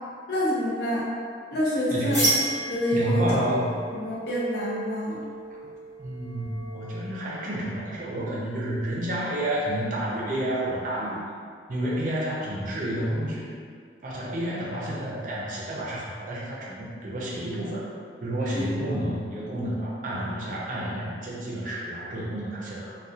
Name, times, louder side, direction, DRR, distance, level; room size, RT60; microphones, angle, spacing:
voice 1, 0.3-1.1 1.5-2.2 2.7-3.4 3.9-5.2 18.5-18.7, equal, 65° left, -6 dB, 0.6 m, -27 dB
voice 2, 1.9-2.3 2.9-3.8 5.5-5.7 6.0-11.2 11.7-13.5 14.0-17.8 18.2-22.9, right 1 dB, 45° right, -5 dB, 0.4 m, -30 dB
sound 1, 2.1-7.7, right 1 dB, 15° left, 1.1 m, -32 dB
2.7 x 2.1 x 2.3 m, 2.1 s
head